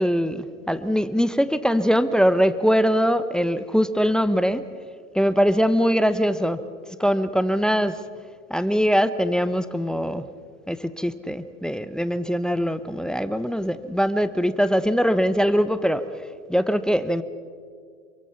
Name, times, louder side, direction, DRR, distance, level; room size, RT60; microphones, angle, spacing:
voice 1, 0.0-4.6 5.1-6.6 7.0-8.0 8.5-10.2 10.7-16.1 16.5-17.2, equal, ahead, 13 dB, 0.9 m, -22 dB
26.5 x 23.5 x 5.8 m, 2.1 s
hypercardioid pair, 80°, 38 cm